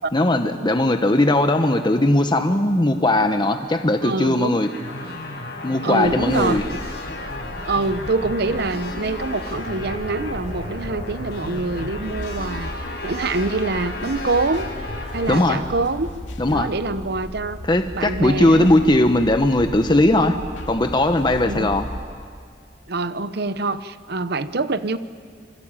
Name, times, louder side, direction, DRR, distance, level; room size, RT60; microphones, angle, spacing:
voice 1, 0.1-4.7 5.6-6.6 15.3-15.6 16.4-16.7 17.7-20.4 20.7-21.9, left 1 dB, 25° left, 6 dB, 0.9 m, -18 dB
voice 2, 4.0-4.5 5.8-6.6 7.7-12.7 13.0-14.7 15.1-16.1 16.5-17.6 17.9-18.7 21.4-21.7 22.9-25.0, right 3 dB, 60° right, 13 dB, 0.9 m, -25 dB
sound 1, 4.6-15.5, left 2 dB, 60° left, 5.4 m, -33 dB
sound 2, 6.0-22.0, equal, 75° left, 2.4 m, -36 dB
26.5 x 24.5 x 9.0 m, 2.1 s
head